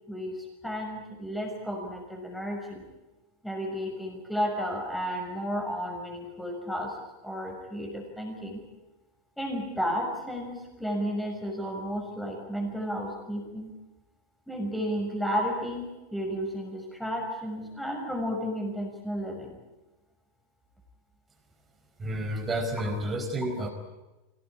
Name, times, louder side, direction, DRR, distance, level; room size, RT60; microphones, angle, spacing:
voice 1, 0.1-2.8 3.4-7.0 7.2-8.6 9.4-13.7 14.5-19.6, equal, ahead, 1 dB, 6.2 m, -33 dB
voice 2, 22.0-23.7, right 1 dB, 15° right, 5 dB, 4.7 m, -30 dB
25.0 x 18.5 x 9.8 m, 1.1 s
supercardioid pair, 160°, 0 cm